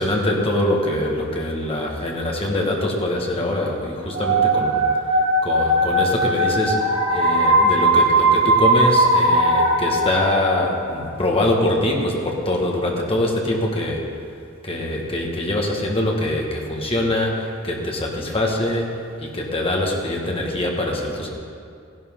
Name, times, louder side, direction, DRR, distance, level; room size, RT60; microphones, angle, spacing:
voice 1, 0.0-4.8 5.4-14.0 14.6-18.9 19.2-21.3, left 1 dB, 25° left, 0 dB, 1.6 m, -23 dB
sound 1, 4.1-10.9, right 1 dB, 70° right, 3.0 m, -19 dB
15.5 x 11.5 x 3.8 m, 2.3 s
head